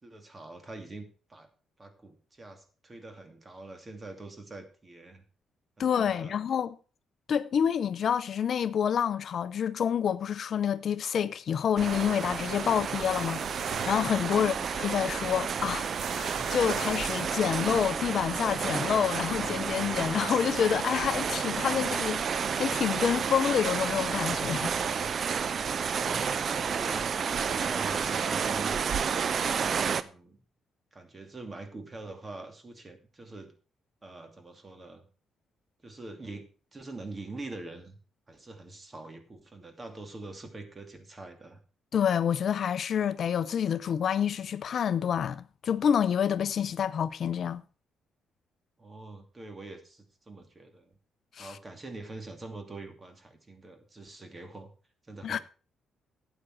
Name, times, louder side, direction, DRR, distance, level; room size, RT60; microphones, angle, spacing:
voice 1, 0.0-1.5 1.8-5.2 5.8-6.3 25.9-30.4 30.9-33.5 34.0-35.0 35.8-38.0 38.3-41.6 48.8-50.9 51.4-54.7 55.1-55.4, right 2 dB, 25° right, 2.6 m, -44 dB
voice 2, 5.8-6.8 7.3-22.2 22.6-24.7 41.9-47.6 51.3-51.6 55.2-55.4, left 8 dB, 60° left, 0.6 m, -28 dB
sound 1, 11.8-30.0, right 6 dB, 50° right, 0.7 m, -31 dB
sound 2, 11.8-17.9, right 5 dB, 75° right, 2.2 m, -41 dB
12.0 x 8.9 x 4.6 m
cardioid pair, 90°, 0 cm